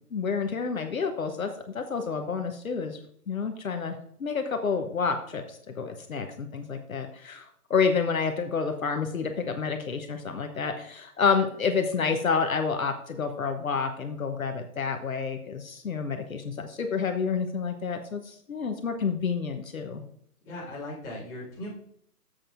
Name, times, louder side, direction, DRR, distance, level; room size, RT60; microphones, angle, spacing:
voice 1, 0.1-1.5 1.7-3.0 3.3-20.0, left 5 dB, 60° left, 5 dB, 1.0 m, -29 dB
voice 2, 20.4-21.7, left 1 dB, 5° left, -11 dB, 2.0 m, -38 dB
11.5 x 7.6 x 2.6 m, 0.66 s
hypercardioid pair, 170°, 47 cm